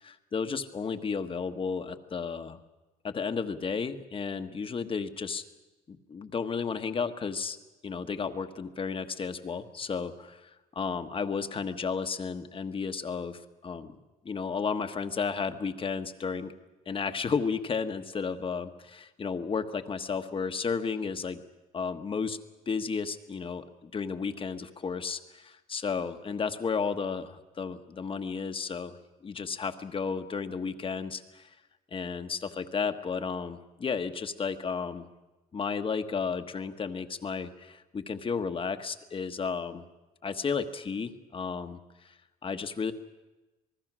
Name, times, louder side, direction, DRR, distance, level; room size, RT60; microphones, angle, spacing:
voice 1, 0.0-2.6 3.0-5.4 5.9-7.6 7.8-14.0 14.2-16.5 16.9-21.4 21.7-22.4 22.7-28.9 29.2-31.6 31.9-35.1 35.5-39.8 40.2-42.2 42.4-42.9, left 5 dB, 30° left, 8 dB, 1.3 m, -33 dB
27.5 x 20.0 x 6.2 m, 1.1 s
cardioid pair, 110°, 17 cm